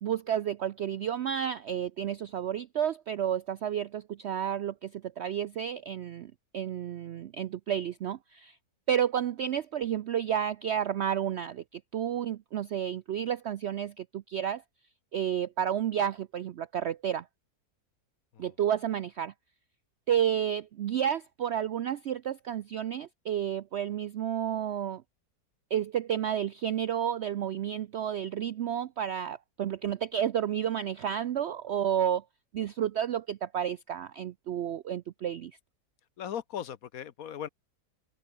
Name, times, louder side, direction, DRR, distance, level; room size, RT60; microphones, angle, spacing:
voice 1, 0.0-8.6 8.9-14.6 15.1-17.2 18.4-19.3 20.1-25.0 25.7-32.2 32.5-35.5, right 9 dB, 70° right, 0.6 m, -31 dB
voice 2, 36.2-37.5, left 9 dB, 65° left, 1.3 m, -38 dB
omnidirectional pair, 1.7 m